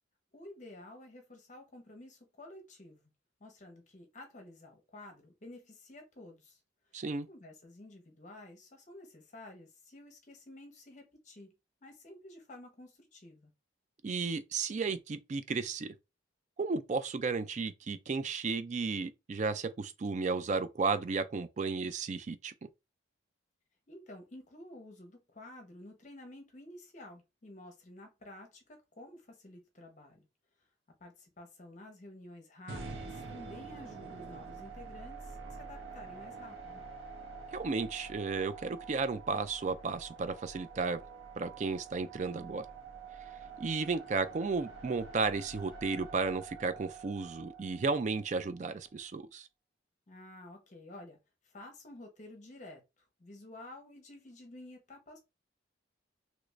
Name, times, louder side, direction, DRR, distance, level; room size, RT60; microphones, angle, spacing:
voice 1, 0.3-3.1 3.4-6.6 6.9-11.5 11.8-13.5 23.9-30.3 31.0-36.8 50.1-51.2 51.4-55.2, left 1 dB, 40° left, 0.8 m, -51 dB
voice 2, 6.9-7.3 14.0-15.9 16.6-22.5 37.5-41.0 41.4-42.7 43.6-49.5, right 4 dB, 35° right, 0.3 m, -33 dB
sound 1, 32.7-48.8, right 4 dB, 80° right, 1.0 m, -47 dB
3.0 x 2.5 x 3.2 m
head